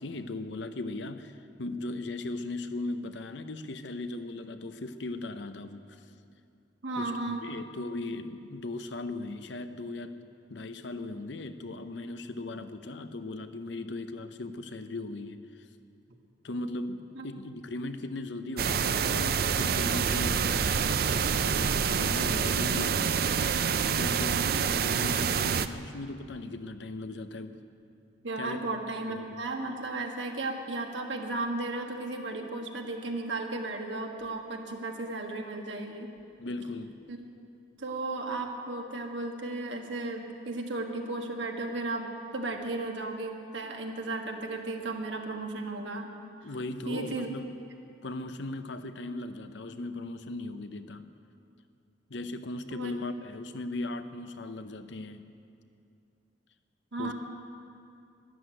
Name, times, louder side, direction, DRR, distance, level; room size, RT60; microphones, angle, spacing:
voice 1, 0.0-6.0 7.0-10.2 10.5-15.7 16.4-23.2 23.9-27.6 28.4-28.6 29.1-29.4 36.4-37.0 46.4-47.6 48.0-51.1 52.1-55.3 57.0-57.1, left 2 dB, 70° left, 10 dB, 0.8 m, -38 dB
voice 2, 6.8-7.4 17.1-17.3 28.2-36.1 37.1-37.2 37.8-46.1 46.8-47.3 52.7-52.9 56.9-57.1, right 2 dB, 80° right, 3 dB, 1.6 m, -35 dB
sound 1, 18.6-25.7, right 6 dB, 50° right, 0.4 m, -27 dB
12.5 x 11.5 x 8.9 m, 2.5 s
head